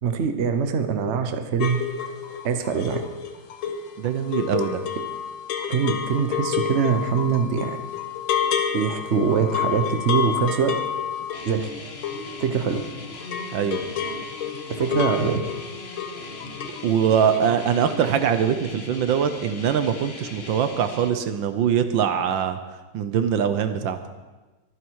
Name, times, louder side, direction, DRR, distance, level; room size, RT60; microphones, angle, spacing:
voice 1, 0.0-1.8 2.4-3.0 5.7-7.8 8.7-10.8 11.5-11.7 12.4-12.8 14.7-15.4, right 6 dB, 45° right, 7 dB, 1.0 m, -23 dB
sound 1, 1.6-12.9 13.1-16.9 17.1-17.6 17.8-17.9, left 8 dB, 80° left, 2.0 m, -29 dB
voice 2, 4.0-4.8 13.5-13.8 16.8-22.6 22.9-24.0, right 8 dB, 70° right, 10 dB, 1.5 m, -22 dB
sound 2, 11.3-21.1, left 3 dB, 35° left, 1.3 m, -39 dB
23.5 x 9.9 x 4.7 m, 1.2 s
omnidirectional pair, 2.2 m